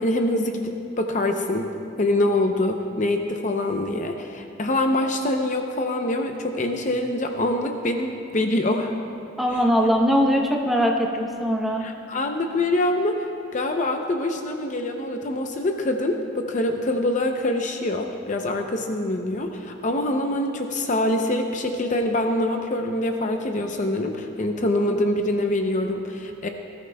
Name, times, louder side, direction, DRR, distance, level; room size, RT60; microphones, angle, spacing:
voice 1, 0.0-1.7 2.0-8.9 9.5-9.6 11.8-13.2 13.5-26.5, left 1 dB, 40° left, 4 dB, 0.6 m, -25 dB
voice 2, 9.4-11.8, equal, ahead, 0 dB, 0.9 m, -21 dB
19.5 x 13.5 x 2.3 m, 2.7 s
head